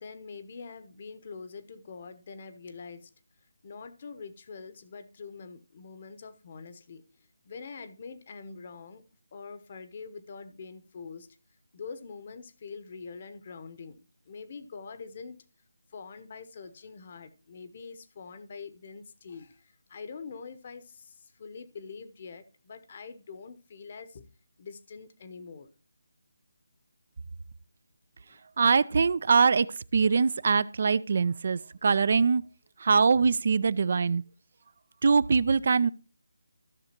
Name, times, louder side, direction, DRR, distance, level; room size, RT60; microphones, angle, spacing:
voice 1, 0.0-3.1 3.6-7.0 7.4-9.0 9.3-11.3 11.7-15.4 15.9-24.2 24.6-25.7 28.3-28.4, left 5 dB, 40° left, 0.9 m, -44 dB
voice 2, 28.6-29.7 29.9-32.4 32.8-34.2 35.0-35.9, right 5 dB, 50° right, 0.4 m, -23 dB
14.0 x 6.5 x 2.9 m
figure-of-eight pair, 160°, 0 cm